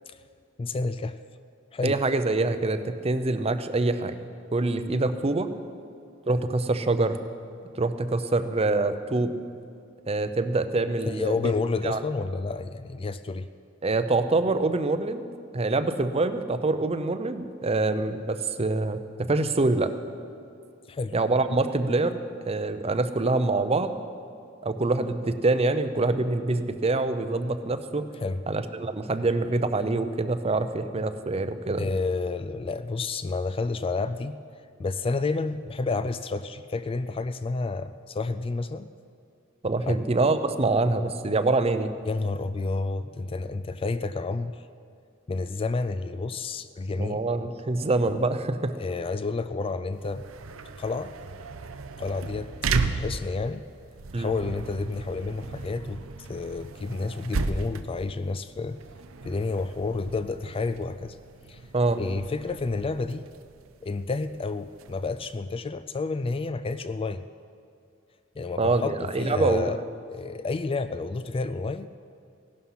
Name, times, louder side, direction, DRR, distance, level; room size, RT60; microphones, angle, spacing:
voice 1, 0.6-1.2 1.7-2.0 11.1-13.5 20.9-21.1 28.2-28.4 31.8-34.4 34.8-38.9 39.9-40.0 42.1-44.5 45.3-47.2 48.8-50.2 50.8-51.1 52.0-52.5 52.9-53.6 54.1-56.0 56.3-58.8 59.2-61.2 61.5-61.6 62.0-63.3 63.8-67.3 68.4-69.8 70.1-71.9, left 3 dB, 25° left, 12 dB, 0.3 m, -30 dB
voice 2, 1.8-4.2 4.5-5.5 6.3-7.2 7.7-9.3 10.1-11.5 11.8-12.0 13.8-15.3 15.5-19.9 21.1-22.2 22.5-24.0 24.6-28.0 28.5-31.9 39.6-41.9 47.0-48.8 54.1-54.3 61.7-62.0 68.6-69.8, right 2 dB, 30° right, 10 dB, 0.6 m, -25 dB
sound 1, 49.9-65.3, right 4 dB, 85° right, 0.7 m, -35 dB
16.5 x 11.5 x 5.7 m, 2.4 s
head